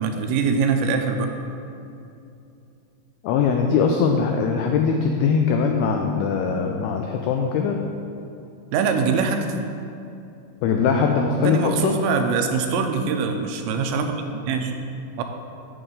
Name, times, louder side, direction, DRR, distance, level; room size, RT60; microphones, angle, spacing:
voice 1, 0.0-1.3 8.7-9.5 11.4-14.2 14.5-14.7 15.2-15.3, right 5 dB, 90° right, 5 dB, 2.8 m, -23 dB
voice 2, 3.2-7.8 10.6-12.0, left 5 dB, 90° left, 3 dB, 2.2 m, -21 dB
7.9 x 7.8 x 3.8 m, 2.6 s
omnidirectional pair, 5.0 m